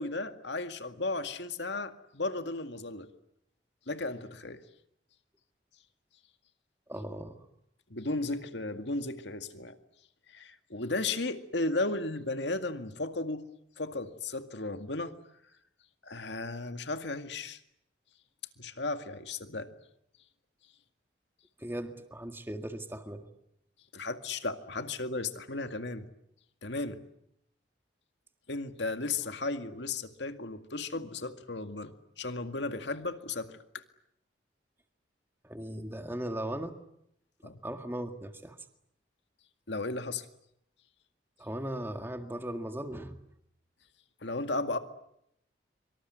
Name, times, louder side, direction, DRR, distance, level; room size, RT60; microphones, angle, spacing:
voice 1, 0.0-3.1 3.9-4.6 7.9-9.8 10.3-13.4 13.8-15.2 16.0-17.6 18.6-19.7 23.9-26.1 26.6-27.0 28.5-33.8 37.4-37.6 39.7-40.3 44.2-44.8, left 3 dB, 75° left, 8 dB, 2.1 m, -35 dB
voice 2, 6.9-7.5 21.6-23.3 35.4-36.7 37.6-38.6 41.4-43.2, right 1 dB, 10° right, 6 dB, 1.9 m, -38 dB
25.5 x 25.0 x 9.3 m, 0.76 s
head